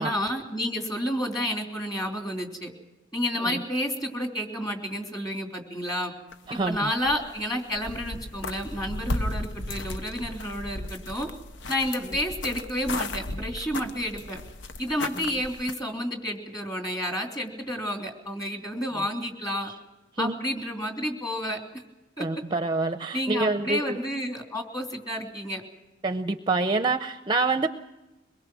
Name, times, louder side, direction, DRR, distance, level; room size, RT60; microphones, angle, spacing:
voice 1, 0.0-2.7 3.1-6.1 6.5-11.3 11.7-14.4 14.8-19.7 20.2-21.6 22.2-22.3 23.1-25.6, equal, 20° left, 3 dB, 3.2 m, -30 dB
sound 1, 6.3-7.4 7.7-15.7, left 2 dB, 80° left, 0.9 m, -35 dB
voice 2, 22.2-24.0 26.0-27.7, right 3 dB, 25° right, 9 dB, 0.6 m, -26 dB
23.5 x 22.0 x 6.2 m, 1.0 s
head